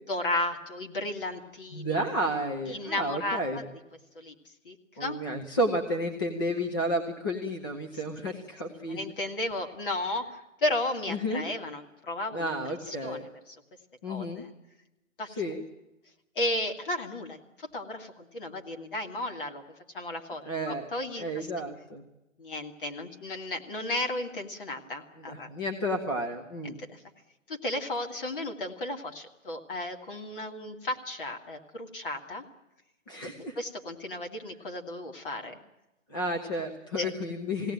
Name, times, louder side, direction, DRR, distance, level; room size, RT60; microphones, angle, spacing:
voice 1, 0.1-2.0 2.7-3.6 4.1-4.3 4.7-5.2 8.2-8.3 8.9-12.5 12.9-13.3 14.1-14.5 15.2-15.3 16.4-19.6 19.9-21.5 22.4-25.5 26.8-27.0 27.5-32.4 33.2-35.6 37.0-37.1, left 1 dB, 40° left, 4 dB, 2.3 m, -34 dB
voice 2, 1.7-3.6 5.0-9.0 11.1-11.4 12.3-13.2 14.0-14.4 15.3-15.6 20.4-20.9 21.2-22.0 25.2-26.8 33.1-33.6 36.1-37.7, equal, 15° left, 2 dB, 0.9 m, -31 dB
21.0 x 17.5 x 9.0 m, 0.96 s
hypercardioid pair, 170°, 40 cm